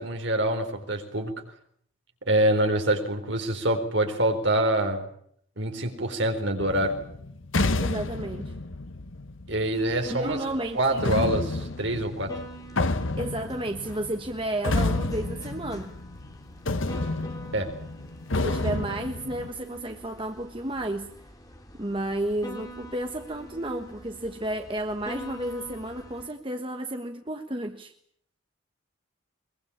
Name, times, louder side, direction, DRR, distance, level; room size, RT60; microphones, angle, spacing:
voice 1, 0.0-1.3 2.3-5.1 5.6-7.0 9.5-10.5 10.7-12.4 17.5-17.7, right 1 dB, 60° right, 5 dB, 4.4 m, -25 dB
sound 1, 6.6-10.0 11.0-16.4 16.7-19.5, left 2 dB, 70° left, 1.2 m, -30 dB
voice 2, 7.8-8.5 10.1-11.1 13.2-15.9 18.4-21.1 21.8-27.9, right 1 dB, 25° right, 5 dB, 1.3 m, -32 dB
sound 2, 9.7-26.3, equal, 15° left, 2.8 m, -45 dB
23.0 x 22.5 x 8.7 m, 0.66 s
head